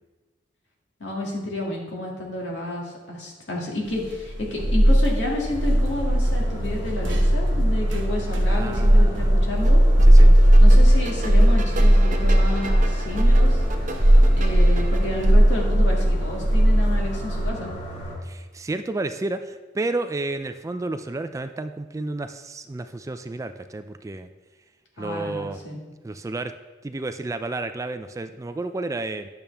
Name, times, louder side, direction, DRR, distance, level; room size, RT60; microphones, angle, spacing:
voice 1, 1.0-9.8 10.6-13.6 14.3-17.7 25.0-25.8, left 1 dB, 70° left, -2 dB, 2.1 m, -30 dB
sound 1, 4.0-17.5, equal, 85° right, 1.0 m, -17 dB
sound 2, 5.5-18.1, left 1 dB, 45° left, 2.7 m, -37 dB
voice 2, 8.5-9.5 10.0-10.4 18.2-24.3 25.0-25.6 26.0-26.5 26.8-29.3, right 2 dB, 15° right, 9 dB, 0.3 m, -31 dB
sound 3, 9.6-15.3, right 2 dB, 45° right, 0.8 m, -37 dB
10.5 x 7.0 x 3.4 m, 1.3 s
head